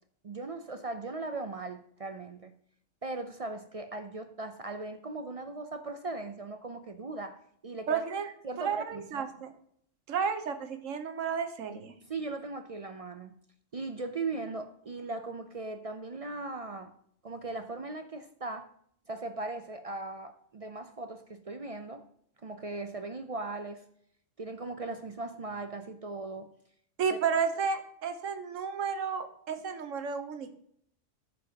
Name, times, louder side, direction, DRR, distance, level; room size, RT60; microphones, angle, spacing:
voice 1, 0.2-2.5 3.0-8.0 8.4-9.3 12.1-13.4 13.7-16.9 17.2-18.7 19.1-22.0 22.4-23.8 24.4-26.5 27.1-27.2, right 3 dB, 50° right, 8 dB, 0.4 m, -38 dB
voice 2, 7.9-8.3 8.6-9.5 10.1-11.9 27.0-30.6, right 6 dB, 80° right, 8 dB, 1.3 m, -32 dB
14.5 x 6.3 x 2.8 m, 0.67 s
omnidirectional pair, 1.3 m